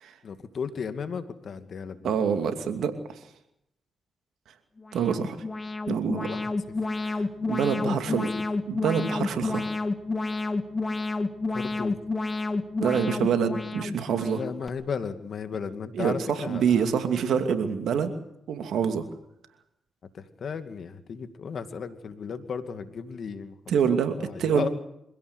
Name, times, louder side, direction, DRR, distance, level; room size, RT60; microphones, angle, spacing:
voice 1, 0.2-2.2 6.3-6.5 7.8-8.2 11.5-12.0 14.3-16.9 20.1-23.5 23.8-24.7, left 6 dB, 65° left, 9 dB, 2.4 m, -35 dB
voice 2, 2.0-2.9 4.9-5.4 5.9-6.3 7.0-7.2 7.5-8.3 8.7-9.7 12.8-14.4 15.9-18.1 18.5-19.0 23.7-24.7, right 7 dB, 80° right, 7 dB, 2.6 m, -26 dB
Alarm, 4.8-14.7, left 3 dB, 35° left, 2.3 m, -30 dB
25.5 x 16.5 x 8.2 m, 0.80 s
supercardioid pair, 45°, 0 cm